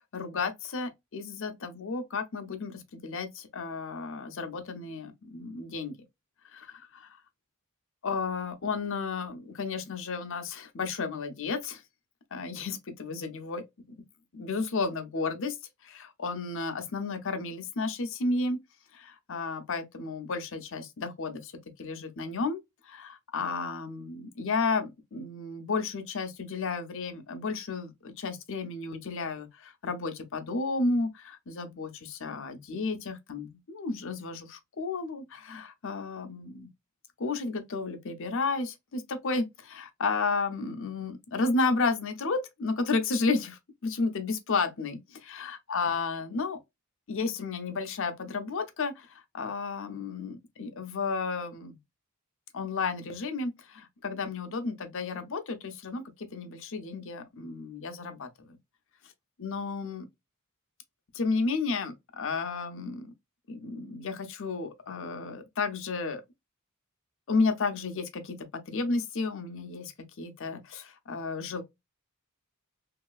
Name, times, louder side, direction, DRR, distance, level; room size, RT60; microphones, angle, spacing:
voice 1, 0.1-6.0 6.5-7.0 8.0-11.8 12.3-13.6 14.3-15.6 15.8-18.6 18.9-21.5 21.8-22.6 22.9-36.7 37.2-46.6 47.1-51.8 52.5-58.6 59.4-60.1 61.1-63.1 63.5-66.2 67.3-69.9 70.2-71.6, left 4 dB, 65° left, 0.7 m, -32 dB
3.1 x 2.8 x 2.3 m
head